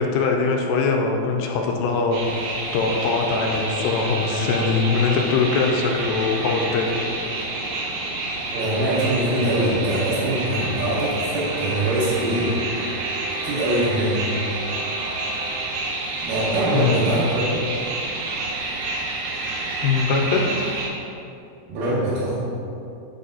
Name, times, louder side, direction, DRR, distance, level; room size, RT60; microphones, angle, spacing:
voice 1, 0.0-2.2 2.7-6.9 7.2-7.3 16.7-17.1 19.8-20.7, left 4 dB, 85° left, 2 dB, 2.7 m, -22 dB
sound 1, 2.1-20.9, right 2 dB, 90° right, 3.1 m, -28 dB
voice 2, 8.5-12.6 13.4-14.2 16.2-17.5 21.7-22.4, right 1 dB, 70° right, -10 dB, 2.2 m, -23 dB
7.7 x 4.1 x 3.8 m, 2.7 s
omnidirectional pair, 4.9 m